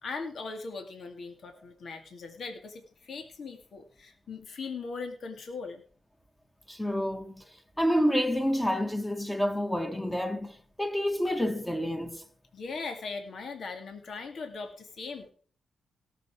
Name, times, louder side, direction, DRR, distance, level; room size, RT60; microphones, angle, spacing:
voice 1, 0.0-5.8 12.5-15.3, left 4 dB, 65° left, 2.4 m, -39 dB
voice 2, 6.7-7.4 7.8-12.2, equal, 10° left, 2.0 m, -28 dB
18.0 x 7.2 x 4.9 m
cardioid pair, 65°, 0 cm